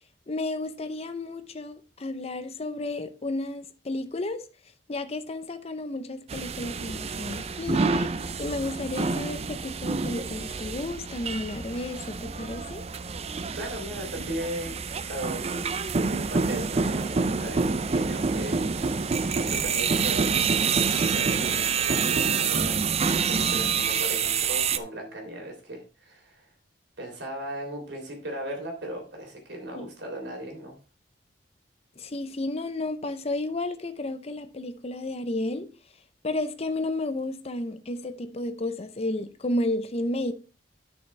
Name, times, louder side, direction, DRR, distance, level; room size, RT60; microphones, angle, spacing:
voice 1, 0.3-4.4 4.9-12.8 29.7-29.9 32.0-35.7 36.2-40.3, left 2 dB, 35° left, 0.7 m, -32 dB
sound 1, 6.3-24.8, right 5 dB, 35° right, 0.5 m, -27 dB
voice 2, 13.5-15.5 16.3-26.5 27.0-30.8, right 1 dB, 70° right, 3.4 m, -37 dB
10.5 x 6.5 x 3.3 m
head